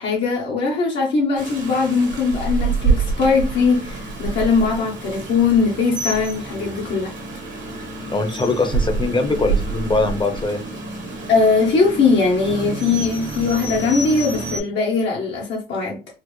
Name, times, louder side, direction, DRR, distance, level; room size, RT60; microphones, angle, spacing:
voice 1, 0.0-7.1 11.3-16.0, left 4 dB, 65° left, 1.2 m, -20 dB
Rain, 1.4-14.6, right 4 dB, 65° right, 1.3 m, -27 dB
voice 2, 8.1-10.6, left 3 dB, 25° left, 0.8 m, -22 dB
4.2 x 2.1 x 3.2 m
cardioid pair, 90°, 20 cm